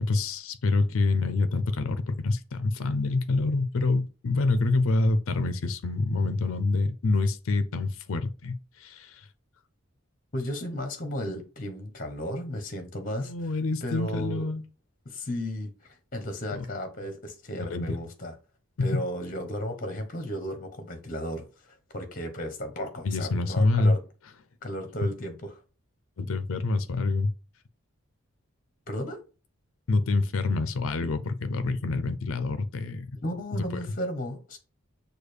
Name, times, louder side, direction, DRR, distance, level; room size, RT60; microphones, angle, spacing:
voice 1, 0.0-9.3 13.3-14.6 16.5-16.6 17.6-18.0 18.8-19.0 23.0-23.9 26.2-27.3 29.9-33.1, left 3 dB, 75° left, 0.5 m, -26 dB
voice 2, 10.3-13.3 13.8-14.5 15.1-18.3 18.8-24.0 24.6-25.6 28.9-29.2 33.2-34.6, equal, 40° left, 0.8 m, -34 dB
6.4 x 2.3 x 3.3 m
head